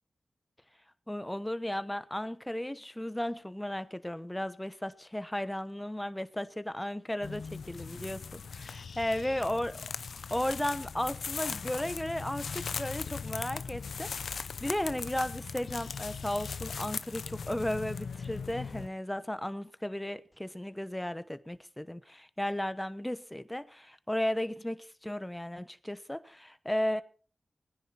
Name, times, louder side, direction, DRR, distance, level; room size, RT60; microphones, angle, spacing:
voice 1, 1.1-9.7 10.1-27.0, left 1 dB, 15° left, 1.1 m, -35 dB
sound 1, 7.2-18.9, left 5 dB, 90° left, 0.5 m, -39 dB
19.5 x 10.0 x 4.2 m
cardioid pair, 45°, 0 cm